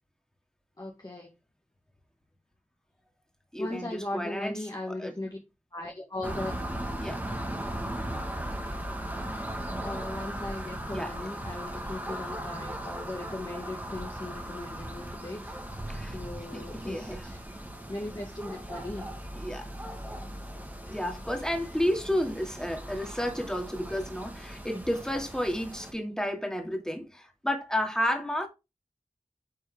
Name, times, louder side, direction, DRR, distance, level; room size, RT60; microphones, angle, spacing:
voice 1, 0.8-1.3 3.6-5.4 5.7-6.6 8.5-8.6 9.2-9.3 9.8-15.7 16.0-17.4 17.9-19.1, left 2 dB, 30° left, 1.9 m, -38 dB
voice 2, 3.5-4.6 5.0-5.1 7.0-7.2 10.9-11.1 15.9-16.2 16.5-17.3 19.3-19.7 20.8-28.5, equal, 5° left, 2.4 m, -31 dB
sound 1, 6.2-25.9, right 1 dB, 15° right, 1.9 m, -38 dB
9.7 x 4.5 x 3.5 m
wide cardioid pair, 55°, 13 cm